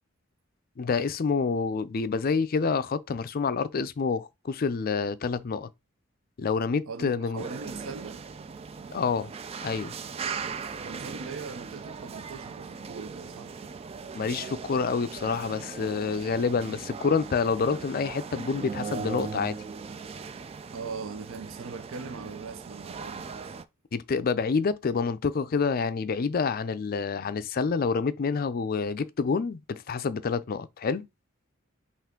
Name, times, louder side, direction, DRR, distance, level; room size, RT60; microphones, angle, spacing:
voice 1, 0.8-5.7 6.4-7.5 8.9-9.3 9.6-9.9 14.1-19.6 23.9-31.1, left 5 dB, 45° left, 0.4 m, -28 dB
voice 2, 6.9-8.2 10.8-13.5 20.7-23.4, right 5 dB, 85° right, 0.5 m, -40 dB
sound 1, 7.4-23.6, right 5 dB, 30° right, 0.3 m, -39 dB
5.7 x 2.5 x 3.7 m
head